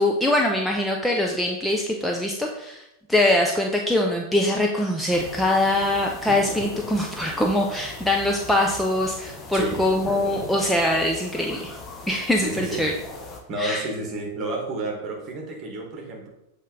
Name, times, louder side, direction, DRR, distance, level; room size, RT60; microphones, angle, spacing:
voice 1, 0.0-2.8 3.1-11.8 12.1-12.9 13.6-13.8, left 1 dB, ahead, 0 dB, 0.5 m, -23 dB
sound 1, 5.1-13.4, left 3 dB, 20° left, 0.9 m, -38 dB
voice 2, 9.5-9.8 12.4-12.9 13.5-16.3, right 2 dB, 30° right, 0 dB, 1.7 m, -30 dB
7.3 x 3.5 x 3.9 m, 0.86 s
figure-of-eight pair, 90°, 0 cm